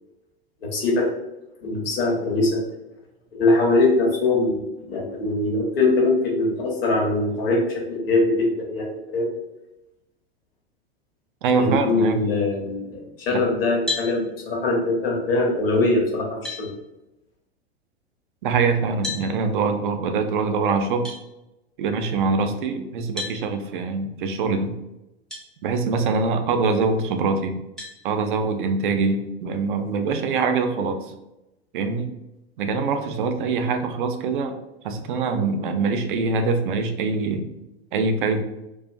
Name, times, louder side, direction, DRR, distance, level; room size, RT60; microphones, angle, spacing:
voice 1, 0.6-1.1 1.6-2.7 3.3-9.3 11.5-16.7, left 2 dB, 60° left, -1 dB, 0.9 m, -22 dB
voice 2, 11.4-12.2 13.3-13.4 18.4-21.1 21.8-24.7 25.6-27.6 28.0-31.0 31.7-32.1 32.6-34.6 34.8-37.4 37.9-38.4, right 4 dB, 50° right, 7 dB, 0.4 m, -23 dB
sound 1, 13.9-14.1 15.8-15.9 16.4-16.7 19.0-19.3 21.0-21.2 23.2-23.4 25.3-25.4 26.1-26.2 27.8-28.0, left 3 dB, ahead, 0.5 m, -30 dB
2.4 x 2.2 x 2.3 m, 0.93 s
figure-of-eight pair, 95°, 32 cm